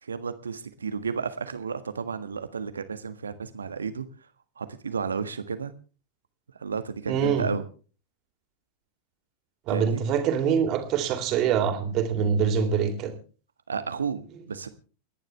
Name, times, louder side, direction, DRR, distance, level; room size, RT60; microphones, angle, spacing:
voice 1, 0.0-4.1 4.6-5.7 6.6-7.7 9.7-10.0 13.7-14.7, right 5 dB, 70° right, 12 dB, 1.5 m, -32 dB
voice 2, 7.1-7.5 9.7-13.1, right 7 dB, 40° right, 6 dB, 3.3 m, -24 dB
29.0 x 10.5 x 3.3 m, 0.37 s
figure-of-eight pair, 90°, 0 cm